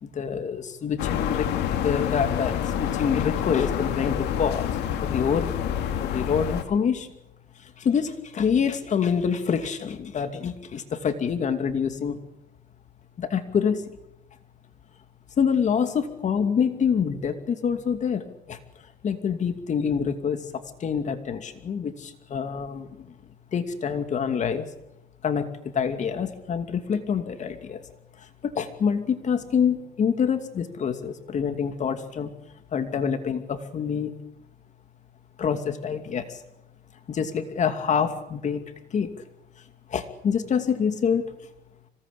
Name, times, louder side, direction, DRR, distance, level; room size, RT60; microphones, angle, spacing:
voice 1, 0.0-4.7 5.0-7.1 7.6-12.2 13.2-14.0 15.4-18.6 19.0-23.1 23.5-24.7 25.2-27.8 28.2-32.3 32.7-34.1 35.4-36.4 37.1-38.6 38.9-39.1 39.9-41.3, left 7 dB, 45° left, 8 dB, 2.6 m, -26 dB
sound 1, 1.0-6.6, left 9 dB, 85° left, 2.7 m, -27 dB
26.0 x 18.5 x 8.6 m, 0.88 s
cardioid pair, 110°, 17 cm